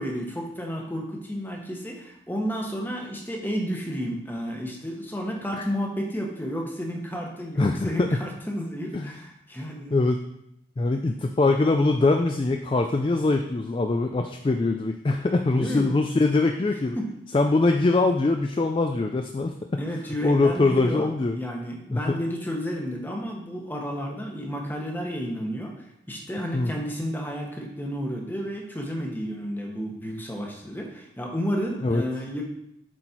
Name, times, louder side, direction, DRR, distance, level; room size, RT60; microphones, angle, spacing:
voice 1, 0.0-10.0 15.5-16.3 17.0-17.1 19.8-32.5, equal, 10° left, 0 dB, 1.1 m, -32 dB
voice 2, 7.6-8.2 8.9-9.1 9.9-10.2 10.8-17.0 17.3-19.8 20.2-21.4 21.9-22.2 26.5-26.7 31.8-32.0, left 3 dB, 30° left, 5 dB, 0.3 m, -23 dB
7.9 x 4.3 x 4.4 m, 0.79 s
head